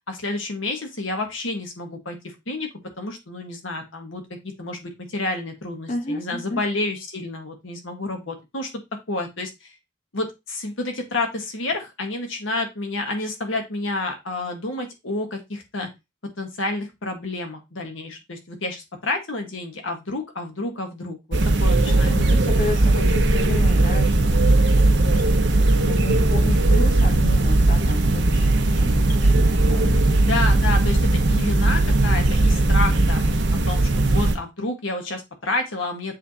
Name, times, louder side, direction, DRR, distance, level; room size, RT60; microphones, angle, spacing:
voice 1, 0.1-2.2 2.5-2.7 3.0-8.7 9.1-9.7 10.1-15.9 16.4-22.2 30.3-33.4 33.7-36.1, left 2 dB, 85° left, 4 dB, 1.7 m, -29 dB
voice 2, 5.9-6.6 21.8-24.5 24.8-30.1, left 2 dB, 40° left, 2 dB, 1.2 m, -33 dB
sound 1, 21.3-34.4, right 2 dB, 65° right, 1.0 m, -18 dB
7.4 x 3.6 x 4.2 m, 0.22 s
head